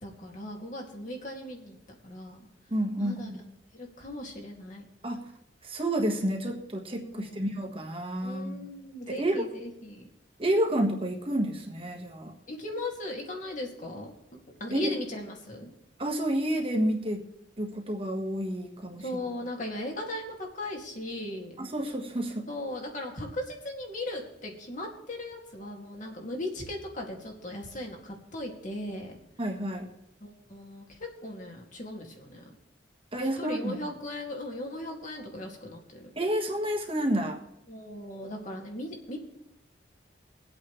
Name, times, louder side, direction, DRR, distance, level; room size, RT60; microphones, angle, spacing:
voice 1, 0.0-2.5 3.0-3.3 3.7-4.8 7.0-7.4 8.2-10.1 12.5-14.1 14.6-15.7 19.0-21.5 22.5-29.1 30.2-32.5 33.4-36.1 37.7-39.2, left 1 dB, 45° left, 1 dB, 2.5 m, -38 dB
voice 2, 2.7-3.4 5.0-5.3 5.6-8.7 9.1-9.5 10.4-12.3 14.7-14.9 16.0-17.2 17.6-19.2 21.6-22.5 29.4-29.9 33.1-33.8 36.1-37.4, right 1 dB, 30° right, 2 dB, 1.6 m, -30 dB
22.0 x 8.5 x 3.3 m, 0.81 s
head